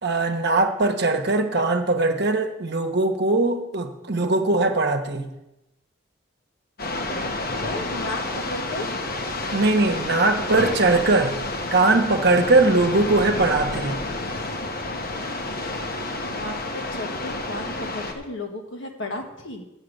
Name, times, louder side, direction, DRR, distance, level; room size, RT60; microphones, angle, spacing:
voice 1, 0.0-5.3 9.5-11.4 11.7-14.0, right 2 dB, 55° right, 6 dB, 1.0 m, -20 dB
sound 1, 6.8-18.1, left 2 dB, 45° left, 1.1 m, -30 dB
voice 2, 7.6-8.9 12.9-13.1 16.3-19.6, left 2 dB, 60° left, 2 dB, 1.5 m, -34 dB
8.0 x 6.7 x 7.8 m, 0.94 s
head